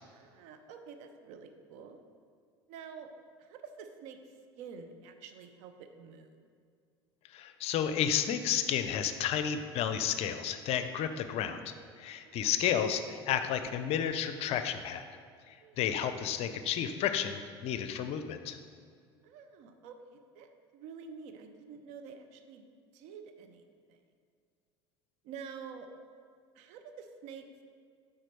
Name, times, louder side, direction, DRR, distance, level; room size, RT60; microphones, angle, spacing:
voice 1, 0.0-2.0 2.7-3.1 3.4-4.2 4.6-6.4 11.3-11.6 12.2-12.5 15.6-15.8 19.2-22.6 22.9-24.0 25.2-25.9 26.5-27.5, right 6 dB, 60° right, 7 dB, 0.7 m, -48 dB
voice 2, 7.3-11.6 12.0-15.0 15.5-18.6, left 9 dB, 50° left, 9 dB, 0.5 m, -32 dB
9.0 x 3.8 x 4.5 m, 2.1 s
hypercardioid pair, 70°, 14 cm